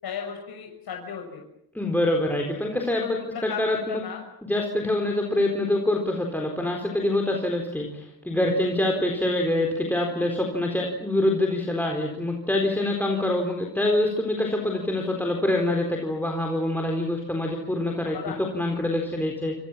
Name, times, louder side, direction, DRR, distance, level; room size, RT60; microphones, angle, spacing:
voice 1, 0.0-1.4 3.0-4.2 18.1-18.4, left 7 dB, 80° left, 1 dB, 6.7 m, -35 dB
voice 2, 1.7-4.0 4.4-19.6, left 1 dB, 5° left, 1 dB, 4.2 m, -25 dB
28.5 x 28.0 x 7.5 m, 0.79 s
wide cardioid pair, 160°, 37 cm